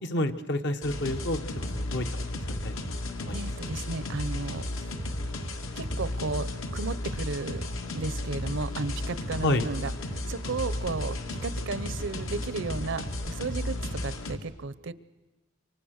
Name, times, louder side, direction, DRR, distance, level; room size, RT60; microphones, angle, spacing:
voice 1, 0.0-2.1 2.5-2.7 3.2-3.4 9.4-9.7, left 1 dB, 60° left, 7 dB, 1.3 m, -29 dB
sound 1, 0.8-14.4, left 1 dB, 75° left, 2.0 m, -34 dB
voice 2, 3.3-5.0 5.8-7.7 7.9-14.9, right 3 dB, 65° right, 16 dB, 0.8 m, -34 dB
28.0 x 24.0 x 6.6 m, 1.1 s
head